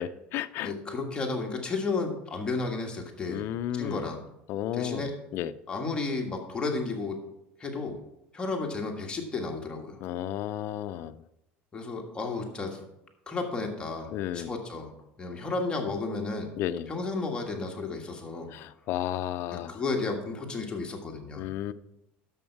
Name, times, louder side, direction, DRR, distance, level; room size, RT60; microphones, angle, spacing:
voice 1, 0.0-0.7 3.2-4.0 4.5-5.5 10.0-11.2 14.1-14.5 16.6-16.9 18.5-19.8 21.4-21.7, left 11 dB, 55° left, 10 dB, 0.5 m, -33 dB
voice 2, 0.6-4.2 4.7-5.1 5.7-7.2 7.6-8.0 8.3-10.0 11.7-12.8 13.3-14.9 15.2-16.5 16.9-18.5 19.5-21.5, left 3 dB, 20° left, 1 dB, 1.6 m, -33 dB
10.5 x 7.2 x 4.6 m, 0.85 s
cardioid pair, 135°, 5 cm